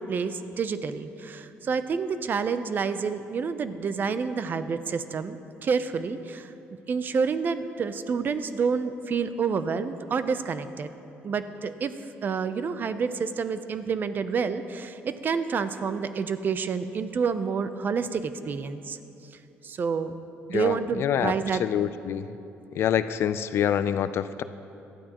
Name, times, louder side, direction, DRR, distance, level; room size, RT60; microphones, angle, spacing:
voice 1, 0.0-6.5 6.9-10.9 11.2-11.9 12.2-19.0 19.6-20.2 20.5-21.6, right 5 dB, 45° right, 11 dB, 0.6 m, -28 dB
voice 2, 20.5-21.3 21.6-22.3 22.8-24.4, left 9 dB, 65° left, 13 dB, 0.4 m, -26 dB
18.0 x 12.5 x 3.0 m, 2.8 s
cardioid pair, 115°, 5 cm